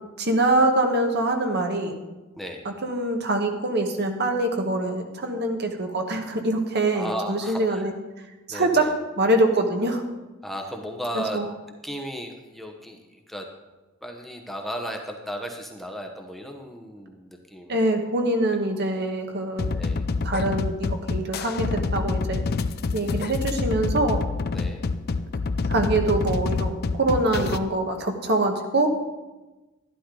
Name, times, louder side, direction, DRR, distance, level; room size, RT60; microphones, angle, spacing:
voice 1, 0.2-2.0 2.6-7.9 8.5-8.9 9.2-10.0 11.1-11.4 17.7-19.7 20.2-22.4 22.9-24.2 25.7-28.9, right 2 dB, 55° right, 4 dB, 1.3 m, -24 dB
voice 2, 6.9-7.9 8.5-8.9 10.4-11.4 11.8-13.5 14.0-17.9 18.9-19.1 19.7-20.0 24.5-24.8, equal, ahead, 2 dB, 0.9 m, -35 dB
sound 1, 19.6-27.6, left 4 dB, 50° left, 0.4 m, -27 dB
11.5 x 11.5 x 3.8 m, 1.1 s
head